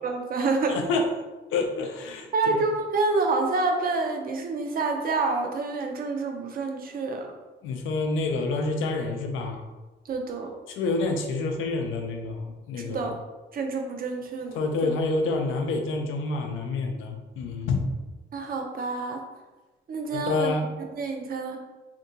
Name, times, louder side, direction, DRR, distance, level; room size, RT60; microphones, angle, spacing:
voice 1, 0.0-0.8 2.3-7.3 10.1-10.5 12.8-13.2 13.5-14.9 18.3-19.2 19.9-20.5 20.8-21.6, right 3 dB, 50° right, 3 dB, 0.6 m, -28 dB
voice 2, 0.7-1.1 1.5-2.6 7.6-9.6 10.8-13.1 14.5-17.9 20.1-20.6, left 3 dB, 85° left, 4 dB, 0.5 m, -28 dB
3.5 x 2.6 x 2.6 m, 1.2 s
cardioid pair, 90°, 20 cm